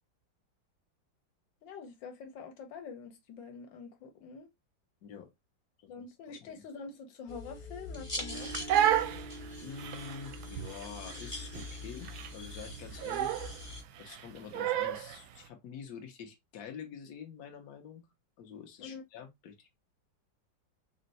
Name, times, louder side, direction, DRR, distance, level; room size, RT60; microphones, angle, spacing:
voice 1, 1.6-4.5 5.9-8.9 18.8-19.0, left 5 dB, 90° left, 1.6 m, -46 dB
sound 1, 7.3-13.8, left 1 dB, 20° left, 0.9 m, -42 dB
Crying sobbing, 8.3-15.2, right 11 dB, 70° right, 1.0 m, -32 dB
voice 2, 9.6-13.4 14.0-18.0 18.4-19.7, left 7 dB, 60° left, 1.4 m, -47 dB
4.3 x 2.2 x 4.0 m
omnidirectional pair, 2.0 m